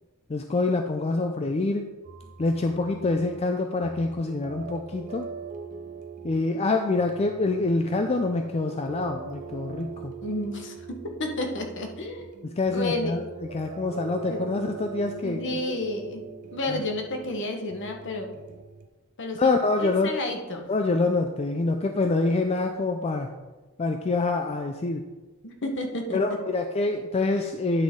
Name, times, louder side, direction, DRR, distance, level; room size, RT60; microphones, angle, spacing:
voice 1, 0.3-1.9 2.4-5.3 6.2-10.2 12.6-15.7 16.7-16.8 19.4-20.2 20.7-23.3 23.8-25.0 26.1-27.8, left 3 dB, 30° left, 5 dB, 0.4 m, -26 dB
sound 1, 2.0-18.9, right 6 dB, 35° right, 0.5 m, -42 dB
voice 2, 10.2-12.2 12.7-13.1 14.3-14.5 15.2-16.2 16.5-18.3 19.2-19.5 19.8-20.7 25.4-26.2, left 1 dB, 55° left, 4 dB, 1.1 m, -31 dB
9.7 x 6.2 x 3.6 m, 1.2 s
head